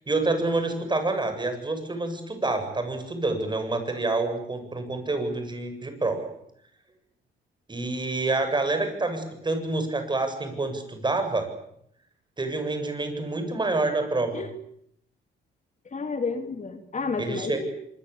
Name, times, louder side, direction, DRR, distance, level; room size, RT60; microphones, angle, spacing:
voice 1, 0.1-6.3 7.7-11.5 12.4-14.4 17.2-17.6, right 2 dB, 20° right, 7 dB, 7.9 m, -27 dB
voice 2, 15.9-17.7, left 4 dB, 35° left, 7 dB, 2.7 m, -31 dB
26.0 x 22.0 x 8.6 m, 0.73 s
cardioid pair, 90°, 20 cm